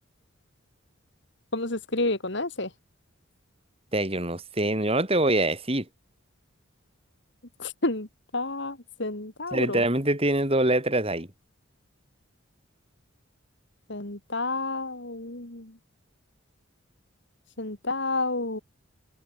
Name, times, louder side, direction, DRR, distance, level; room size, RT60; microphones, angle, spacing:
voice 1, 1.5-2.7 7.6-8.1 8.3-9.8 13.9-15.7 17.6-18.6, left 2 dB, 60° left, 2.6 m, -30 dB
voice 2, 3.9-5.9 9.5-11.3, right 1 dB, 30° right, 4.2 m, -24 dB
open air
head